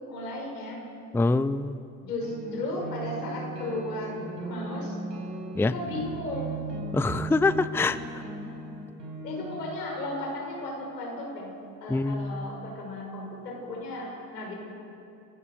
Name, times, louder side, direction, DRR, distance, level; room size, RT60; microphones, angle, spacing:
voice 1, 0.1-0.8 2.0-5.0 5.6-6.5 9.2-11.5 11.8-14.5, left 2 dB, 90° left, -1 dB, 6.2 m, -35 dB
voice 2, 1.1-1.8 5.6-5.7 6.9-8.0 11.9-12.4, left 3 dB, 5° left, 15 dB, 0.6 m, -24 dB
sound 1, 2.2-9.6, right 2 dB, 90° right, 5.0 m, -37 dB
27.5 x 16.5 x 6.7 m, 2.8 s
hypercardioid pair, 70°, 48 cm